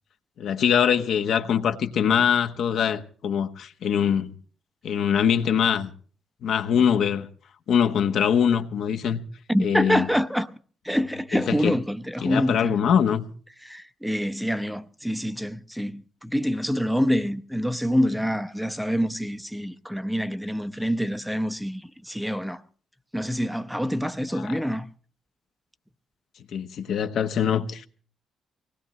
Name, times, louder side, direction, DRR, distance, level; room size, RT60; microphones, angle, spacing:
voice 1, 0.4-4.3 4.8-5.9 6.4-7.3 7.7-9.2 9.6-10.1 11.3-11.7 12.2-13.3 24.3-24.6 26.5-27.9, left 8 dB, 70° left, 1.1 m, -23 dB
voice 2, 9.5-10.5 10.8-12.8 13.7-21.8 22.1-22.6 23.1-24.9, equal, 5° right, 0.7 m, -26 dB
24.0 x 18.5 x 3.1 m
cardioid pair, 90°, 0 cm